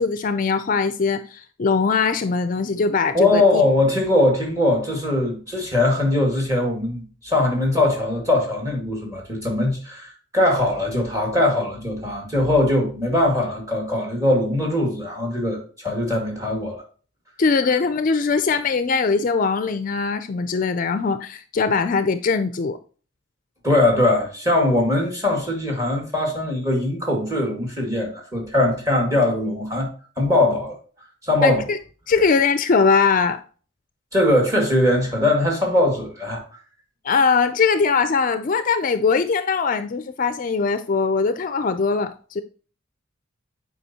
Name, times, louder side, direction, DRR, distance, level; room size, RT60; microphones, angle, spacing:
voice 1, 0.0-3.6 17.4-22.8 31.4-31.8 32.1-33.4 37.0-42.4, left 5 dB, 40° left, 0.4 m, -21 dB
voice 2, 3.1-16.8 23.6-29.9 30.2-30.7 31.2-31.6 34.1-36.4, left 1 dB, 15° right, 2.0 m, -21 dB
8.1 x 4.9 x 2.8 m
head